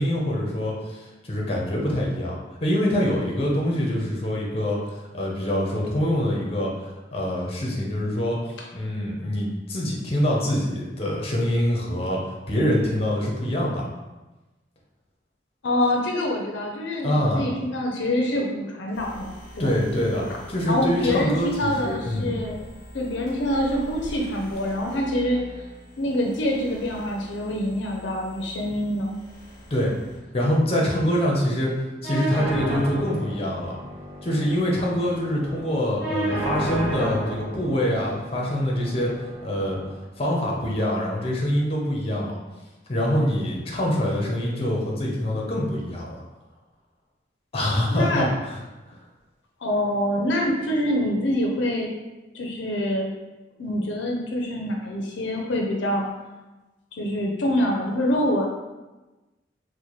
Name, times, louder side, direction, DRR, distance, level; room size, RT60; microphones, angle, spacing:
voice 1, 0.0-8.4 8.7-13.9 17.0-17.4 19.6-22.3 29.7-29.9 30.3-33.8 34.2-39.1 39.4-39.8 40.2-42.3 42.9-46.2 47.5-48.6, equal, 30° left, -3 dB, 0.6 m, -25 dB
voice 2, 15.6-19.7 20.7-22.7 22.9-25.4 26.0-29.1 47.9-48.3 49.6-52.0 52.3-53.1 53.6-56.1 56.9-58.5, left 1 dB, 75° left, 0 dB, 0.5 m, -25 dB
sound 1, 18.9-30.2, equal, ahead, 1.5 m, -44 dB
sound 2, 32.0-40.0, right 1 dB, 55° right, 0.8 m, -32 dB
4.2 x 2.1 x 3.0 m, 1.1 s
head